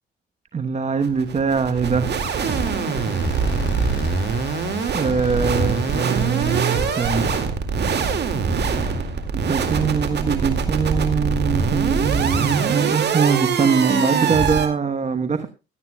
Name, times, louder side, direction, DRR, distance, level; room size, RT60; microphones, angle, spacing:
voice 1, 0.5-2.1 4.9-7.4 8.8-9.0 9.3-15.5, right 5 dB, 35° right, 9 dB, 1.1 m, -22 dB
sound 1, 1.0-14.7, right 5 dB, 60° right, 2.2 m, -23 dB
sound 2, 2.1-7.5, left 5 dB, 65° left, 4.2 m, -38 dB
17.0 x 12.0 x 2.3 m, 0.28 s
cardioid pair, 90°, 20 cm